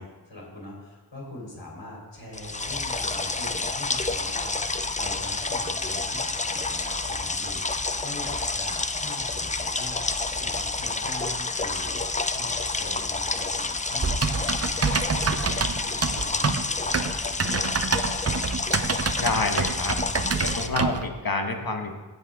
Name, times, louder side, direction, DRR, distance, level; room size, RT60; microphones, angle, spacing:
voice 1, 0.0-18.4, left 1 dB, 85° left, -4 dB, 3.3 m, -42 dB
sound 1, 2.3-20.7, left 3 dB, 20° left, 0.4 m, -29 dB
Typing, 14.0-21.1, right 4 dB, 35° right, 0.6 m, -27 dB
voice 2, 19.2-20.0 20.4-22.0, left 3 dB, 55° left, 3 dB, 1.3 m, -28 dB
16.0 x 5.4 x 3.6 m, 1.2 s
wide cardioid pair, 40°, 43 cm